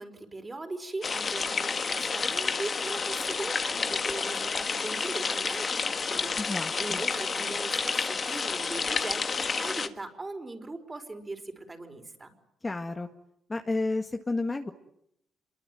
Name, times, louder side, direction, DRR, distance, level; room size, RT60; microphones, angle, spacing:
voice 1, 0.0-6.4 6.8-12.3, right 2 dB, 20° right, 6 dB, 4.9 m, -39 dB
sound 1, 1.0-9.9, left 5 dB, 40° left, 1.7 m, -30 dB
voice 2, 6.4-7.0 12.6-13.1 13.5-14.7, left 2 dB, 20° left, 5 dB, 1.9 m, -31 dB
27.5 x 23.0 x 9.2 m, 0.76 s
cardioid pair, 90°, 0 cm